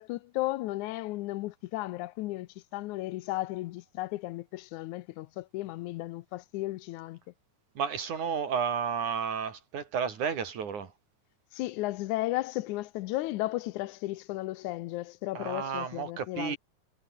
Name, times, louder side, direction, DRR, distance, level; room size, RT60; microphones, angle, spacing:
voice 1, 0.0-7.2 11.5-16.6, left 18 dB, 90° left, 2.1 m, -34 dB
voice 2, 7.8-10.9 15.3-16.6, right 6 dB, 85° right, 4.7 m, -32 dB
omnidirectional pair, 3.3 m